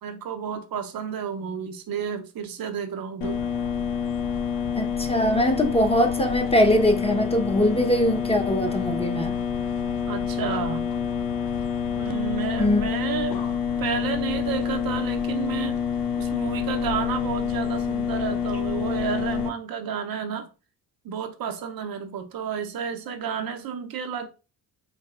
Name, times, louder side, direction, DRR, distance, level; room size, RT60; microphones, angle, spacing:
voice 1, 0.0-3.5 10.1-10.9 12.0-13.4 13.8-15.8 16.2-20.5 21.0-24.3, right 7 dB, 60° right, 0.7 m, -31 dB
sound 1, 3.2-19.5, left 7 dB, 60° left, 0.7 m, -27 dB
voice 2, 4.7-9.4 12.6-12.8, equal, 15° left, 0.9 m, -22 dB
4.0 x 2.6 x 2.3 m
supercardioid pair, 60°, 41 cm